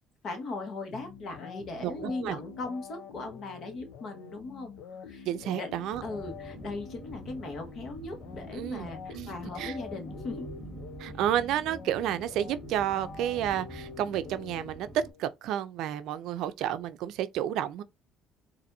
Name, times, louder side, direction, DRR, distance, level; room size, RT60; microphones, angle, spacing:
voice 1, 0.2-4.7 5.0-5.7 6.0-10.5, left 3 dB, 55° left, 1.3 m, -38 dB
sound 1, 0.9-15.2, left 7 dB, 90° left, 0.6 m, -46 dB
voice 2, 1.8-2.4 5.3-6.0 8.5-9.8 11.0-17.8, right 11 dB, 75° right, 0.4 m, -31 dB
sound 2, 5.9-15.1, right 2 dB, 30° right, 0.9 m, -46 dB
4.2 x 2.6 x 2.6 m
cardioid pair, 100°, 0 cm